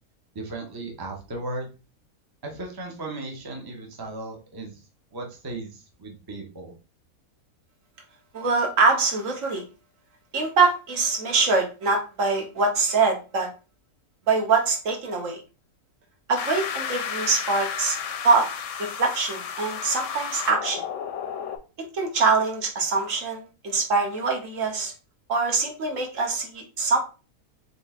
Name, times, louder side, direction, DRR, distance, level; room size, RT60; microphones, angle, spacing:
voice 1, 0.3-1.7 2.4-4.8 5.1-6.7, right 2 dB, 20° right, 1 dB, 0.6 m, -36 dB
voice 2, 8.3-9.6 10.3-13.5 14.3-15.4 16.3-18.0 18.2-18.5 18.8-20.8 21.9-24.9 25.3-27.0, right 4 dB, 60° right, 2 dB, 1.3 m, -23 dB
sound 1, 16.4-21.6, left 7 dB, 65° left, 0.8 m, -32 dB
4.1 x 3.5 x 2.4 m, 0.32 s
omnidirectional pair, 1.5 m